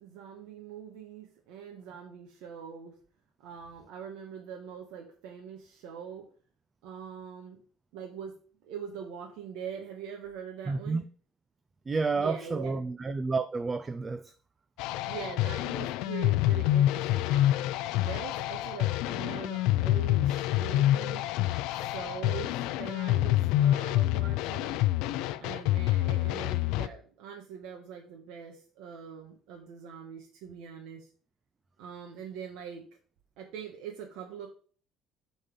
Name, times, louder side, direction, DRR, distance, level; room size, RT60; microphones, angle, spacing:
voice 1, 0.0-3.0 3.4-6.3 6.8-7.6 7.9-11.0 12.1-12.8 15.0-17.6 18.0-21.3 21.7-24.8 25.4-31.1 31.8-32.9 33.4-34.5, right 7 dB, 80° right, 1.4 m, -43 dB
voice 2, 10.7-11.1 11.9-14.3, right 4 dB, 15° right, 0.3 m, -30 dB
sound 1, 14.8-26.9, left 14 dB, 80° left, 0.4 m, -27 dB
8.6 x 4.1 x 5.3 m
cardioid pair, 180°, 0 cm